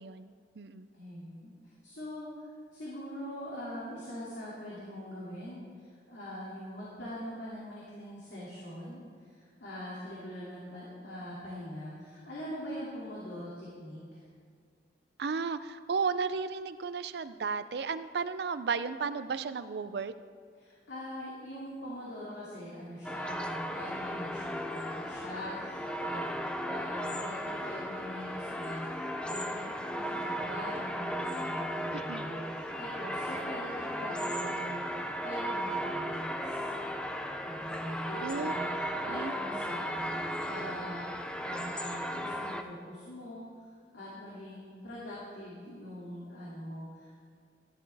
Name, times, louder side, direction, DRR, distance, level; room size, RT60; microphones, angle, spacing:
voice 1, 0.0-0.9 15.2-20.1 31.9-32.3 38.2-38.5 39.1-39.3, right 5 dB, 70° right, 12 dB, 0.4 m, -34 dB
voice 2, 0.9-14.2 20.5-26.3 26.6-36.7 37.4-40.0 40.5-47.1, equal, 85° left, -7 dB, 2.4 m, -43 dB
sound 1, 23.0-42.6, equal, 5° left, 0.5 m, -36 dB
13.5 x 11.0 x 3.4 m, 2.1 s
head